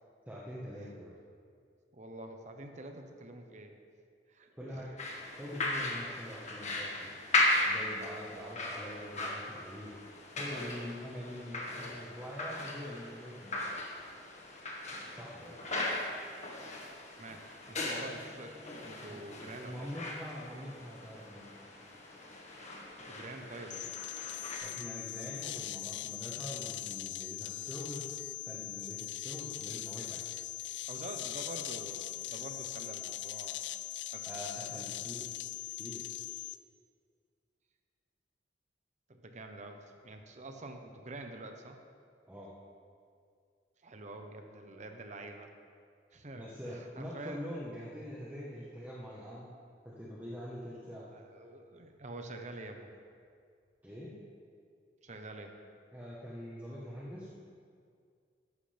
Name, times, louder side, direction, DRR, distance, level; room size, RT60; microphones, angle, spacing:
voice 1, 0.3-1.1 4.6-4.9 5.4-7.1 7.7-9.9 10.4-13.6 15.1-15.6 19.1-21.5 24.6-28.1 28.4-30.2 34.3-35.3 35.8-36.1 42.3-42.5 46.3-49.5 49.8-51.1 53.8-54.1 55.9-57.3, equal, 10° right, -7 dB, 1.3 m, -44 dB
voice 2, 1.9-3.7 4.3-4.9 17.2-19.9 23.0-24.0 30.8-33.6 34.1-34.9 39.1-41.8 43.8-45.5 46.1-47.4 50.9-52.9 55.0-55.6, right 2 dB, 45° right, 5 dB, 1.0 m, -47 dB
sound 1, 5.0-24.6, left 2 dB, 40° left, 1.7 m, -37 dB
sound 2, 23.7-36.6, left 16 dB, 85° left, 0.4 m, -40 dB
13.5 x 11.0 x 3.5 m, 2.2 s
head